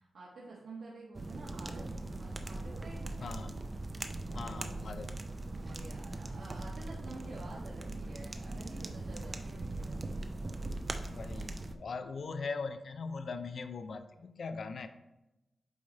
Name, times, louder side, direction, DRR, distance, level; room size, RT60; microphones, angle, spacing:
voice 1, 0.0-3.3 5.6-10.2, right 2 dB, 85° right, -6 dB, 1.2 m, -49 dB
sound 1, 1.1-11.7, right 2 dB, 25° right, 0.4 m, -40 dB
voice 2, 3.2-3.6 4.3-5.1 11.0-14.9, left 4 dB, 60° left, 9 dB, 0.4 m, -40 dB
8.3 x 3.3 x 4.0 m, 0.98 s
wide cardioid pair, 150°, 0 cm